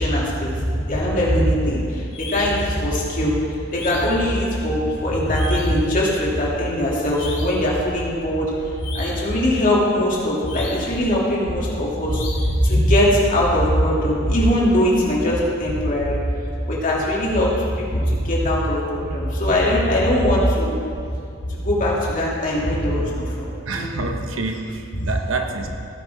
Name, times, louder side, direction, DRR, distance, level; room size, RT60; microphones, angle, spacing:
voice 1, 0.0-3.3 3.7-8.5 8.8-16.1 16.7-20.8 21.5-23.9, equal, 45° left, -5 dB, 2.8 m, -21 dB
sound 1, 2.1-2.7 3.7-4.3 5.3-5.9 7.1-7.7 8.8-9.3 10.4-11.0 12.1-12.6, left 3 dB, 70° left, 3.0 m, -36 dB
voice 2, 23.7-25.7, right 3 dB, 80° right, 3 dB, 1.2 m, -27 dB
17.5 x 9.5 x 3.6 m, 2.4 s
head